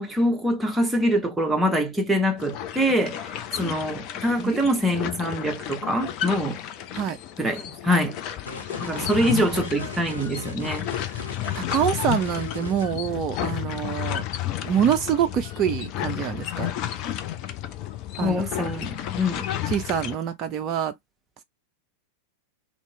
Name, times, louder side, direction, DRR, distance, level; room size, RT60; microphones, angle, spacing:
voice 1, 0.0-3.2 3.5-6.6 7.4-8.2 8.8-10.9 18.2-19.5, equal, 5° right, 0.9 m, -24 dB
sound 1, 2.4-20.2, left 11 dB, 40° left, 0.5 m, -32 dB
sound 2, 8.5-12.8, left 2 dB, 75° left, 1.2 m, -39 dB
voice 2, 8.9-9.6 11.1-11.2 11.5-14.3 14.6-16.7 18.2-18.4 19.7-20.9, right 9 dB, 35° right, 0.4 m, -26 dB
2.8 x 2.8 x 3.1 m
figure-of-eight pair, 90°, 0 cm